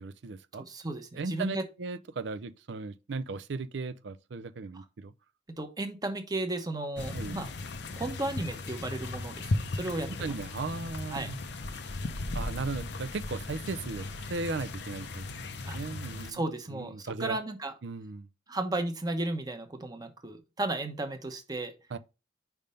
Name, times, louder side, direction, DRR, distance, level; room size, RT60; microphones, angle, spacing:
voice 1, 0.0-0.7 1.1-5.1 7.1-7.4 10.2-11.4 12.3-15.3 15.7-16.4 16.7-17.4 17.8-18.3 21.9-22.0, right 3 dB, 65° right, 0.5 m, -36 dB
voice 2, 0.5-1.7 4.7-4.8 5.5-7.5 8.0-10.3 11.1-11.3 15.7-15.8 16.3-17.7 18.5-21.7, right 2 dB, 20° right, 0.8 m, -34 dB
sound 1, 7.0-16.3, left 2 dB, 60° left, 0.6 m, -37 dB
5.2 x 3.5 x 5.5 m
head